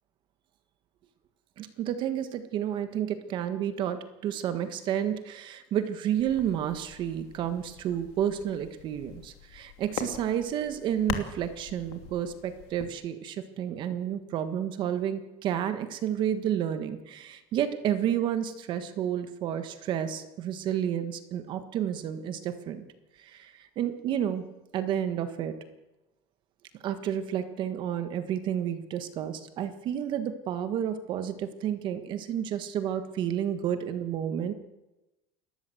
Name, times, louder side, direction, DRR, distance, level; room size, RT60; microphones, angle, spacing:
voice 1, 1.6-22.8 23.2-24.5 24.7-25.6 26.8-34.5, right 10 dB, 35° right, 10 dB, 1.5 m, -31 dB
sound 1, 6.2-12.9, left 9 dB, 85° left, 2.9 m, -42 dB
29.5 x 13.0 x 7.9 m, 1.0 s
cardioid pair, 165°, 13 cm